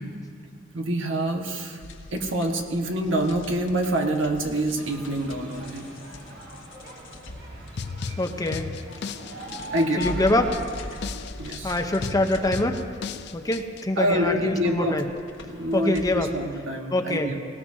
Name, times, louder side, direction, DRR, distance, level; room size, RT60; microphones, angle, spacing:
voice 1, 0.7-1.8 2.1-5.9 8.1-8.2 9.7-10.2 11.4-11.8 14.0-15.0 15.4-17.4, right 1 dB, 80° right, 2 dB, 1.5 m, -26 dB
sound 1, 1.8-16.3, left 1 dB, 80° left, 1.3 m, -43 dB
sound 2, 4.8-10.6, equal, 60° right, 3.3 m, -40 dB
sound 3, 7.8-13.8, left 5 dB, 60° left, 0.5 m, -36 dB
voice 2, 8.2-8.7 10.0-10.6 11.6-12.8 13.3-15.0 15.7-16.3 16.9-17.3, left 1 dB, 20° left, 5 dB, 0.7 m, -24 dB
19.0 x 18.0 x 2.8 m, 2.2 s
head